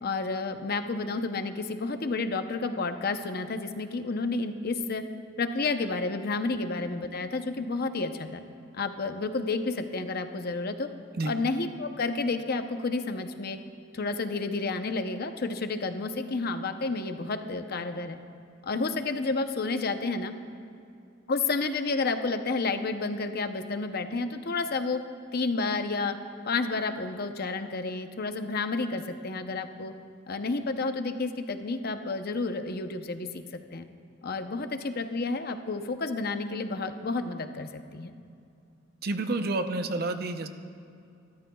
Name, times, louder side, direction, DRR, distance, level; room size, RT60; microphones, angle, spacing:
voice 1, 0.0-5.0 5.4-8.4 8.7-10.9 11.3-13.6 13.9-18.2 18.6-20.3 21.3-25.0 25.3-26.2 26.5-29.9 30.3-33.9 34.2-38.1, left 3 dB, 55° left, 8 dB, 0.7 m, -30 dB
voice 2, 39.0-40.5, right 2 dB, 55° right, 7 dB, 0.7 m, -29 dB
24.5 x 13.5 x 2.3 m, 2.5 s
head